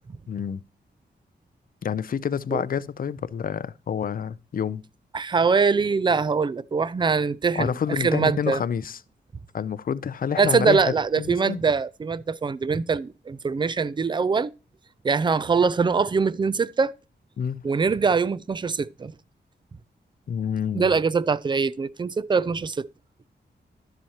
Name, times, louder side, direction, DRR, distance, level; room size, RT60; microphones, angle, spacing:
voice 1, 0.3-0.6 1.8-4.8 7.6-9.0 9.5-10.8 11.2-11.6 17.4-17.6 20.3-21.0, left 7 dB, 50° left, 0.5 m, -28 dB
voice 2, 5.1-8.6 10.4-14.5 15.0-16.9 17.6-19.1 20.7-22.9, right 5 dB, 25° right, 0.4 m, -23 dB
11.5 x 7.6 x 2.8 m
wide cardioid pair, 125°, 18 cm